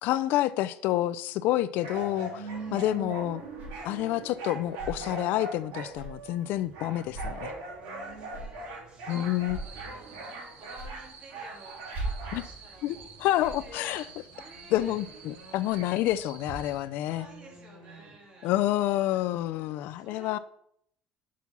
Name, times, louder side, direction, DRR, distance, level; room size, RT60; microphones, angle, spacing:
voice 1, 0.0-3.4 3.8-7.5 9.1-9.6 12.3-12.4 12.8-14.0 14.7-17.3 18.4-20.4, left 14 dB, 70° left, 0.4 m, -28 dB
sound 1, 1.8-16.2 16.7-18.5 19.1-19.2, right 2 dB, 90° right, 3.4 m, -42 dB
voice 2, 2.2-2.8 7.8-13.1 13.3-14.9 17.0-18.5 20.0-20.4, right 1 dB, 30° right, 2.9 m, -52 dB
sound 2, 2.5-16.5, right 2 dB, 50° right, 3.6 m, -44 dB
sound 3, 9.1-16.8, right 6 dB, 65° right, 2.1 m, -51 dB
6.1 x 5.9 x 5.5 m
cardioid pair, 135°, 3 cm